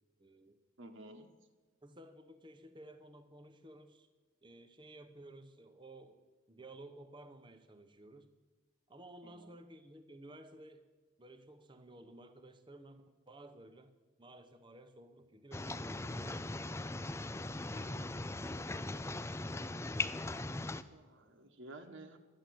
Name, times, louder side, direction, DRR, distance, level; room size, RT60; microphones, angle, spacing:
voice 1, 0.2-0.6 1.8-4.1 4.4-6.2 6.5-8.3 8.9-10.8 11.2-13.9 14.2-16.7, right 1 dB, 20° right, 8 dB, 0.9 m, -54 dB
voice 2, 0.8-1.3 9.2-9.6 17.7-18.1 20.9-22.2, right 2 dB, 60° right, 5 dB, 1.3 m, -53 dB
sound 1, 15.5-20.8, left 2 dB, 10° left, 0.4 m, -39 dB
12.5 x 10.5 x 7.7 m, 1.3 s
head